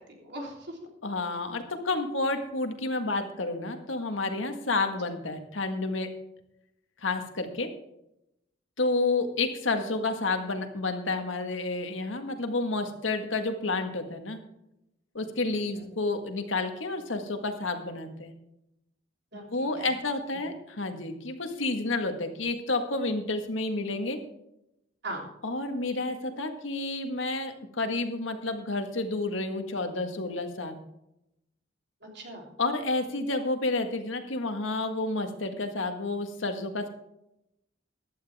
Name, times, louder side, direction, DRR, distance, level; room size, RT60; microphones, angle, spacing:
voice 1, 0.2-0.8 15.8-15.9 19.3-19.9 20.3-20.5 25.0-25.3 32.0-32.5, right 1 dB, 60° right, 1 dB, 3.4 m, -40 dB
voice 2, 1.0-6.1 7.0-7.7 8.8-14.4 15.2-18.3 19.5-24.2 25.4-30.8 32.6-36.9, left 2 dB, 80° left, 6 dB, 1.7 m, -30 dB
15.0 x 11.5 x 3.5 m, 0.84 s
head